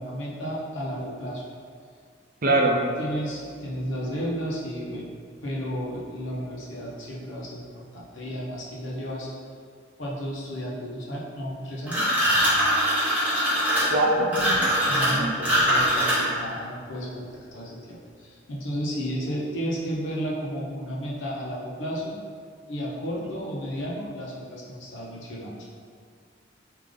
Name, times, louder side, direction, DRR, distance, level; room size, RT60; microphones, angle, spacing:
voice 1, 0.0-1.4 3.0-5.1 5.4-9.3 10.0-12.1 14.9-22.2 22.7-25.7, equal, 80° left, -5 dB, 1.0 m, -33 dB
voice 2, 2.4-2.8 13.9-15.3, right 1 dB, 45° right, -1 dB, 0.6 m, -24 dB
sound 1, 11.9-16.5, equal, 10° right, 1.3 m, -22 dB
4.9 x 2.8 x 3.8 m, 2.1 s
head